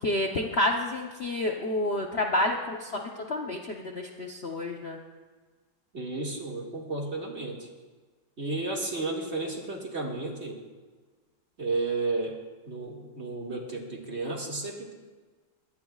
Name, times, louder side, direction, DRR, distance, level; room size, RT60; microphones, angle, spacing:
voice 1, 0.0-5.0, left 1 dB, 45° left, 1 dB, 0.9 m, -29 dB
voice 2, 5.9-7.7 8.4-10.6 11.6-12.4 12.7-14.9, right 3 dB, 35° right, -1 dB, 2.2 m, -32 dB
23.0 x 17.0 x 2.4 m, 1.4 s
omnidirectional pair, 2.0 m